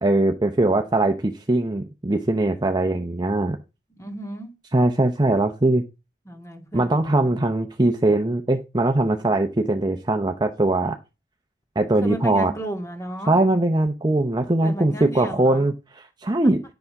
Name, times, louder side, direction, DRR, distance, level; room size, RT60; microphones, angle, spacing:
voice 1, 0.0-3.6 4.7-5.8 6.7-11.0 11.8-12.5 13.3-16.6, right 2 dB, 25° right, 6 dB, 0.7 m, -21 dB
voice 2, 4.0-4.5 6.3-7.4 12.0-13.3 14.6-15.7, right 1 dB, 15° left, 2 dB, 2.1 m, -34 dB
10.5 x 7.0 x 4.7 m, 0.27 s
head